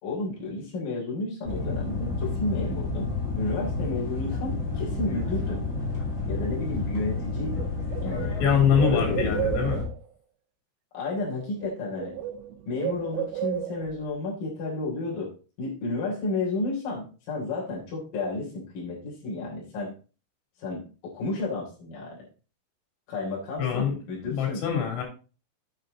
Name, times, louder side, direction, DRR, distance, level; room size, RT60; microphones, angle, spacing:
voice 1, 0.0-5.6 6.3-7.7 8.0-8.3 8.9-9.4 10.9-12.1 12.7-15.3 15.6-19.9 20.6-22.3 23.1-24.6, left 3 dB, 45° left, -5 dB, 4.5 m, -32 dB
Trains passing, 1.4-9.8, left 3 dB, 25° left, 1.9 m, -30 dB
Bird, 7.1-7.2 7.5-10.0 11.1-11.3 11.6-14.0, right 12 dB, 80° right, 2.6 m, -33 dB
voice 2, 8.4-9.8 23.6-23.9 24.3-25.0, left 7 dB, 80° left, 2 dB, 5.4 m, -24 dB
9.1 x 6.4 x 4.0 m, 0.35 s
omnidirectional pair, 5.8 m